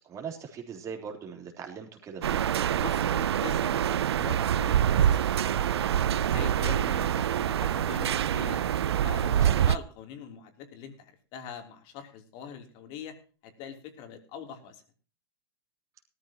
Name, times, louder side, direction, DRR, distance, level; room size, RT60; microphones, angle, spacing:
voice 1, 0.1-2.5 9.4-9.6, right 6 dB, 25° right, 3 dB, 3.7 m, -40 dB
sound 1, 2.2-9.8, right 10 dB, 80° right, 0.6 m, -26 dB
voice 2, 2.8-5.9 6.3-8.6 9.0-13.1 13.4-14.8, left 7 dB, 40° left, 5 dB, 3.4 m, -43 dB
sound 2, 4.2-9.7, right 6 dB, 5° left, 3.7 m, -42 dB
18.0 x 13.5 x 3.0 m, 0.37 s
hypercardioid pair, 135°, 13 cm